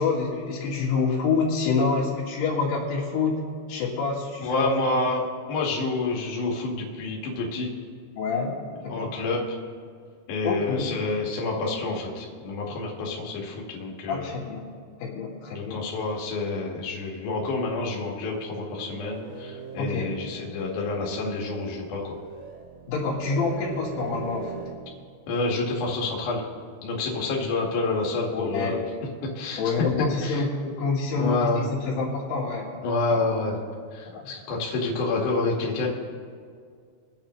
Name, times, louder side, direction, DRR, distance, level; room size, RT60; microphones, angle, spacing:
voice 1, 0.0-3.4 3.7-4.7 8.2-8.6 8.8-9.1 10.4-10.9 14.1-14.7 15.0-15.8 19.8-20.1 22.9-24.7 28.3-28.8 29.6-32.7 33.1-33.2 34.1-34.3, left 4 dB, 85° left, -4 dB, 4.3 m, -27 dB
voice 2, 4.4-7.7 8.9-9.5 10.3-14.3 15.5-22.2 25.3-26.4 26.8-28.8 29.4-29.8 30.2-30.4 31.2-31.7 32.8-33.6 33.9-35.9, left 3 dB, 55° left, -3 dB, 2.8 m, -28 dB
sound 1, 18.6-24.8, right 6 dB, 70° right, 1.6 m, -40 dB
23.5 x 8.8 x 3.1 m, 2.1 s
omnidirectional pair, 5.1 m